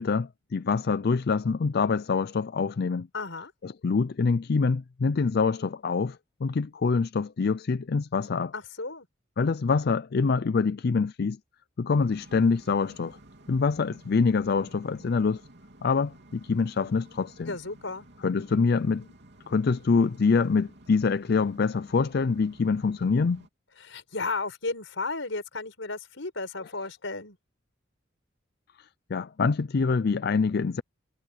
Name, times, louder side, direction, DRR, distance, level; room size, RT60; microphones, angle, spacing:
voice 1, 0.0-3.1 3.6-8.5 9.4-11.4 11.8-13.2 13.5-15.4 15.8-17.5 18.2-19.1 19.5-23.4 29.1-30.8, left 4 dB, 55° left, 0.4 m, -25 dB
voice 2, 3.1-3.5 8.5-9.1 17.5-18.1 23.8-27.4, left 3 dB, 85° left, 4.8 m, -34 dB
sound 1, 11.9-23.5, right 1 dB, 65° right, 3.2 m, -53 dB
head